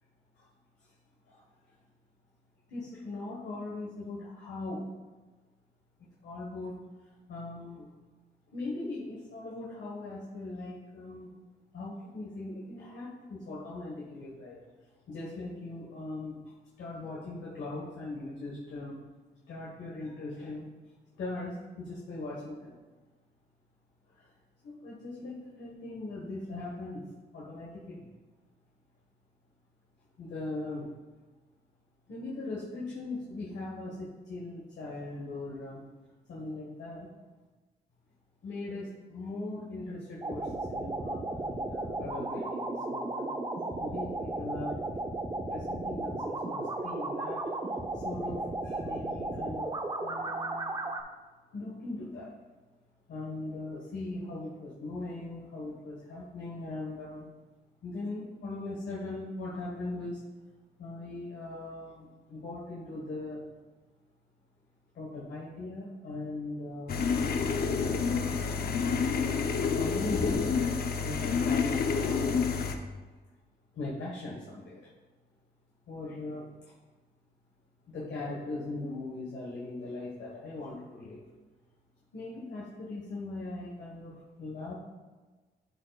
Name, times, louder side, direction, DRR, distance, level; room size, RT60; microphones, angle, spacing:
voice 1, 2.7-4.9 6.2-6.8 7.3-7.9 8.5-11.4 11.7-14.6 15.1-16.4 16.8-19.0 19.5-20.7 21.1-22.8 24.2-24.3 24.6-27.0 27.3-28.1 30.2-30.9 32.1-35.8 36.3-37.1 38.4-43.3 43.8-44.8 45.4-47.4 47.9-49.7 50.0-50.8 51.5-52.3 53.1-57.3 57.8-60.2 60.8-63.4 64.9-67.5 67.8-68.5 69.7-72.5 73.7-74.9 75.9-76.7 77.9-81.2 82.1-84.7, left 2 dB, 85° left, -6 dB, 1.4 m, -40 dB
sound 1, 40.2-51.0, right 2 dB, 25° right, 0.6 m, -35 dB
sound 2, 66.9-72.7, left 5 dB, 60° left, 0.6 m, -28 dB
12.0 x 4.2 x 2.4 m, 1.3 s
cardioid pair, 80°, 18 cm